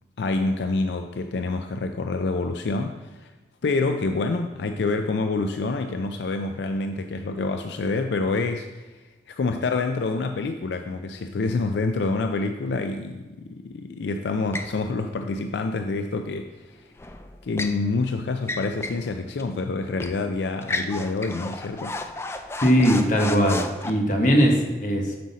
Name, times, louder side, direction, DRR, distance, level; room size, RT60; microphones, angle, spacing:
voice 1, 0.2-3.3 3.6-8.9 9.3-16.5 17.4-22.0, left 3 dB, 80° left, 6 dB, 0.4 m, -27 dB
sound 1, 14.5-14.8 17.0-17.8 18.4-19.1 19.4-19.5 20.0-20.2 20.6-23.9, left 2 dB, 15° left, 0.4 m, -33 dB
voice 2, 22.6-25.2, equal, 45° left, 2 dB, 1.2 m, -20 dB
7.8 x 6.3 x 4.1 m, 1.2 s
head